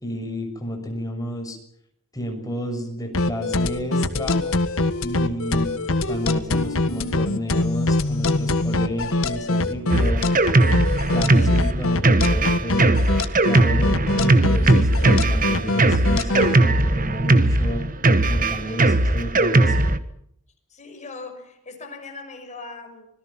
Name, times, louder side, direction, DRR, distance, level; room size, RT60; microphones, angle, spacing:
voice 1, 0.0-1.6 2.1-4.4 5.0-5.7 6.1-10.5 11.1-13.1 13.4-17.8 18.3-19.9, equal, 15° left, 4 dB, 6.7 m, -31 dB
sound 1, 3.1-16.5, left 2 dB, 65° left, 1.8 m, -23 dB
Drum kit, 9.9-20.0, right 2 dB, 40° right, 1.4 m, -19 dB
voice 2, 18.6-19.1 20.7-23.1, left 3 dB, 35° left, 5 dB, 6.3 m, -40 dB
26.0 x 21.5 x 5.9 m, 0.68 s
head